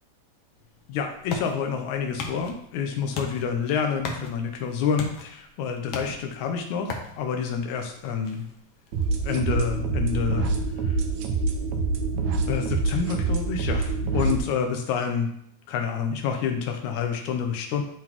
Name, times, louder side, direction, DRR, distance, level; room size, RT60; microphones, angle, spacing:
Punching rubber tire, 0.6-12.0, left 4 dB, 65° left, 1.6 m, -41 dB
voice 1, 0.9-6.9 7.2-8.4 9.2-10.5 10.8-11.0 12.5-15.3 15.7-17.8, left 6 dB, 90° left, 4 dB, 2.1 m, -28 dB
sound 1, 8.9-14.4, right 4 dB, 80° right, 2.1 m, -26 dB
11.5 x 3.9 x 3.0 m, 0.68 s
omnidirectional pair, 3.3 m